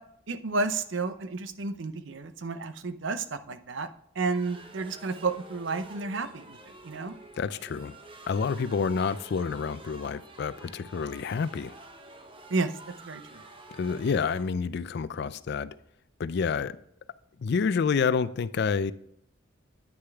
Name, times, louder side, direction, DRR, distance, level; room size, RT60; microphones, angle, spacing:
voice 1, 0.3-3.9 4.2-7.1 12.5-12.7 13.0-13.4, right 3 dB, 65° right, 0.6 m, -31 dB
sound 1, 4.3-14.4, right 2 dB, 25° right, 0.9 m, -49 dB
voice 2, 7.4-8.0 8.3-11.8 13.8-15.7 16.2-16.8 17.4-18.9, left 5 dB, 55° left, 0.4 m, -28 dB
9.5 x 6.5 x 3.5 m
head